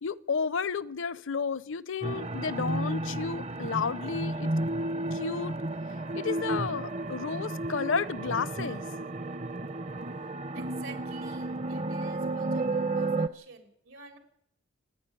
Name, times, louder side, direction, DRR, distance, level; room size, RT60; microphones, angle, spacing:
voice 1, 0.0-4.5 5.1-5.6 6.2-8.8, left 5 dB, 70° left, 0.7 m, -32 dB
sound 1, 2.0-13.3, right 2 dB, 35° right, 0.7 m, -32 dB
voice 2, 10.5-14.2, right 4 dB, 85° right, 4.2 m, -49 dB
28.0 x 10.0 x 9.7 m
head